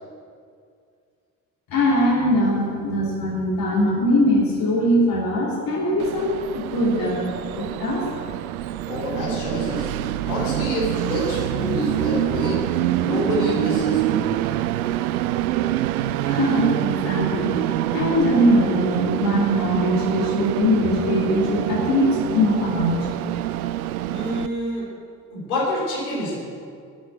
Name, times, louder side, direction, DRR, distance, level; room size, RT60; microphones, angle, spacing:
voice 1, 1.7-7.3 7.5-8.1 16.2-17.5 17.9-23.1, equal, 50° left, -4 dB, 2.9 m, -21 dB
Train, 6.0-24.5, right 13 dB, 75° right, 0.5 m, -25 dB
voice 2, 8.8-12.6 13.0-14.3 24.1-24.9 25.3-26.4, left 1 dB, 75° left, -6 dB, 3.2 m, -27 dB
12.0 x 7.6 x 7.6 m, 2.3 s
figure-of-eight pair, 50°, 44 cm